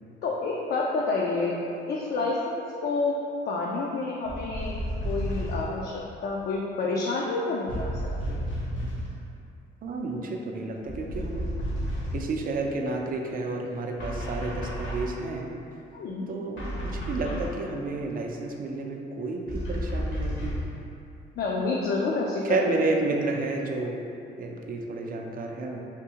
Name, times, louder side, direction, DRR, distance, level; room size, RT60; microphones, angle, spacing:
voice 1, 0.2-1.6 1.9-3.2 3.5-4.7 5.0-7.9 8.3-8.4 15.9-16.2 21.4-22.6, left 3 dB, 55° left, -3 dB, 0.4 m, -28 dB
sound 1, 4.3-5.7 7.7-9.1 10.8-12.3 14.0-15.2 16.6-17.6 19.5-20.8, equal, 75° left, 1.0 m, -32 dB
voice 2, 9.8-11.5 12.1-15.5 16.3-20.6 22.4-24.0 24.4-25.8, right 3 dB, 45° right, 2 dB, 0.4 m, -31 dB
3.6 x 2.7 x 2.8 m, 2.7 s
cardioid pair, 90°, 20 cm